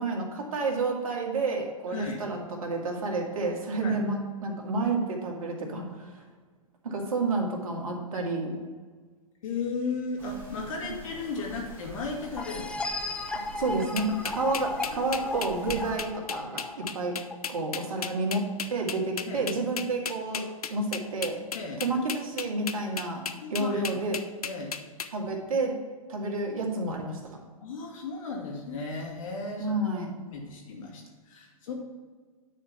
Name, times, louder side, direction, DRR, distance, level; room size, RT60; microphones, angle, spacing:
voice 1, 0.0-6.1 6.8-8.6 13.6-17.1 17.5-21.4 21.8-23.2 23.5-24.2 25.1-25.7 26.1-27.4 29.6-30.2, right 3 dB, 70° right, 0 dB, 2.2 m, -30 dB
voice 2, 1.9-2.2 3.8-4.0 9.4-12.7 14.9-15.0 19.3-19.5 21.5-21.8 23.4-23.9 24.4-24.7 27.6-29.9 30.3-31.7, left 4 dB, 65° left, 0 dB, 2.5 m, -35 dB
sound 1, 10.2-16.0, right 2 dB, 10° right, 2.2 m, -46 dB
sound 2, 12.4-17.8, left 2 dB, 5° left, 0.5 m, -36 dB
sound 3, 14.0-25.1, left 6 dB, 90° left, 0.6 m, -34 dB
9.7 x 4.5 x 5.7 m, 1.5 s
hypercardioid pair, 115°, 18 cm